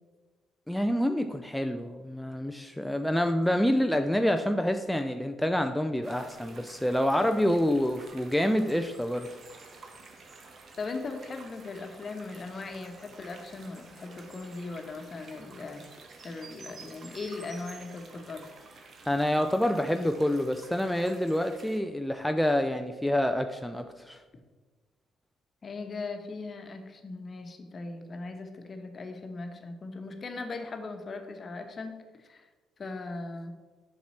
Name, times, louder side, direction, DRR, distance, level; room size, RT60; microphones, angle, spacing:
voice 1, 0.7-9.3 19.1-24.2, equal, 5° left, 6 dB, 0.5 m, -27 dB
sound 1, 6.0-21.8, right 3 dB, 50° right, 1.2 m, -50 dB
voice 2, 10.8-15.8 16.2-18.4 25.6-32.5 32.8-33.5, left 3 dB, 40° left, 6 dB, 1.1 m, -39 dB
7.2 x 6.0 x 4.2 m, 1.3 s
hypercardioid pair, 50°, 0 cm